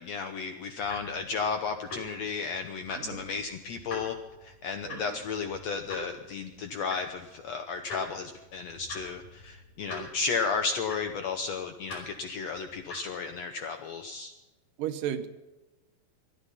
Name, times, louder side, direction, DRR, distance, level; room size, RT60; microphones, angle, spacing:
voice 1, 0.0-4.1 4.4-14.3, left 5 dB, 75° left, 1.6 m, -33 dB
sound 1, 0.8-13.4, left 2 dB, 50° left, 6.4 m, -46 dB
voice 2, 4.8-5.2 14.8-15.3, right 10 dB, 75° right, 2.5 m, -34 dB
20.5 x 12.5 x 5.6 m
omnidirectional pair, 4.1 m